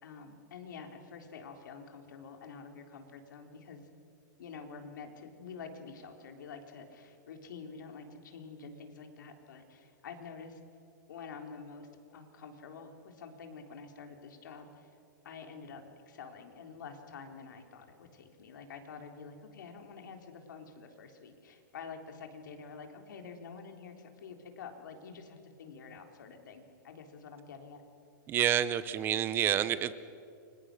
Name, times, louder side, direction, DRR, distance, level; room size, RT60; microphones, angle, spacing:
voice 1, 0.0-3.9 4.4-10.6 11.1-15.0 15.2-27.8, left 5 dB, 80° left, 4 dB, 3.8 m, -48 dB
voice 2, 28.3-29.9, right 10 dB, 20° right, 15 dB, 0.7 m, -28 dB
29.5 x 25.0 x 6.4 m, 2.5 s
supercardioid pair, 160°, 10 cm